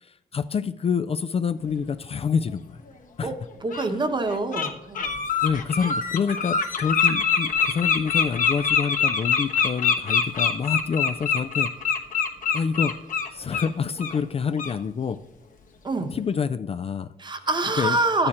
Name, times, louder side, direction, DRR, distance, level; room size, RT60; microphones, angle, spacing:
voice 1, 0.0-2.8 3.2-3.4 5.4-11.7 12.5-13.0 13.3-15.2 16.1-17.1 17.7-18.0 18.2-18.3, left 6 dB, 40° left, 12 dB, 0.4 m, -27 dB
Bird, 2.9-3.0 3.7-3.9 4.3-4.7 4.9-13.7 14.0-14.2 14.6-14.7, left 6 dB, 60° left, 1.2 m, -24 dB
voice 2, 3.6-5.1 15.8-16.1 17.2-18.3, right 2 dB, 30° right, 8 dB, 1.0 m, -25 dB
12.5 x 8.7 x 4.3 m, 0.89 s
wide cardioid pair, 150°, 16 cm